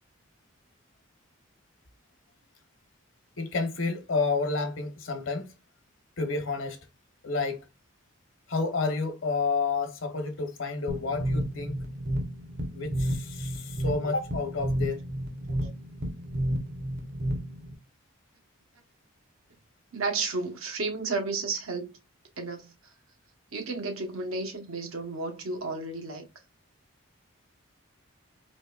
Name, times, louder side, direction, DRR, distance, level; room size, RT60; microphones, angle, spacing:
voice 1, 3.4-5.5 6.2-6.8 7.2-7.7 8.5-11.8 12.7-15.0, left 4 dB, 65° left, 1.0 m, -30 dB
sound 1, 10.9-17.7, equal, 50° right, 0.8 m, -31 dB
voice 2, 19.9-21.9 22.4-22.7 23.5-26.2, right 3 dB, 75° right, 1.1 m, -32 dB
4.1 x 3.0 x 2.3 m
head